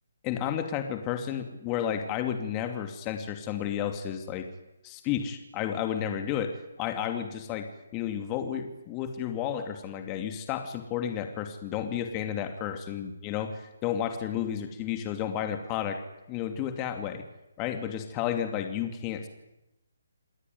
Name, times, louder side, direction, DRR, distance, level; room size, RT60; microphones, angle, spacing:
voice 1, 0.2-4.5 4.8-16.0 16.3-17.2 17.6-19.3, left 9 dB, 20° left, 6 dB, 2.6 m, -32 dB
28.0 x 20.0 x 9.6 m, 0.94 s
figure-of-eight pair, 150°, 0 cm